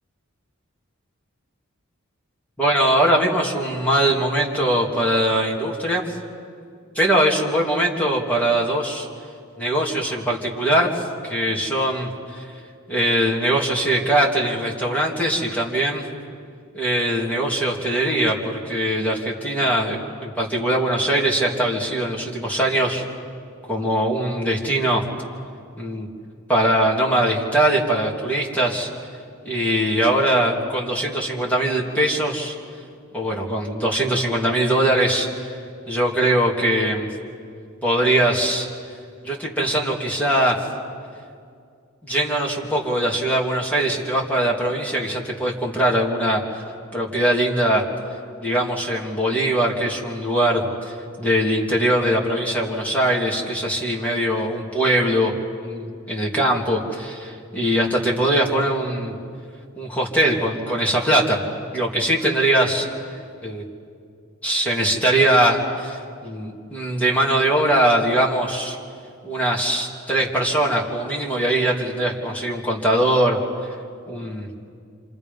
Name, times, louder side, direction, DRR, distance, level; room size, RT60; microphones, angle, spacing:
voice 1, 2.6-6.0 6.9-9.1 9.6-12.4 12.9-16.0 16.7-23.0 23.7-25.0 25.8-26.1 26.5-28.9 29.4-32.5 33.1-35.5 35.9-37.1 37.8-38.7 39.2-40.6 42.0-46.6 46.9-47.8 48.4-55.3 55.6-59.1 59.8-61.4 61.7-62.9 63.4-63.6 64.4-68.8 69.2-73.4 74.1-74.5, right 1 dB, 5° left, -3 dB, 2.9 m, -21 dB
27.5 x 27.5 x 5.5 m, 2.3 s
head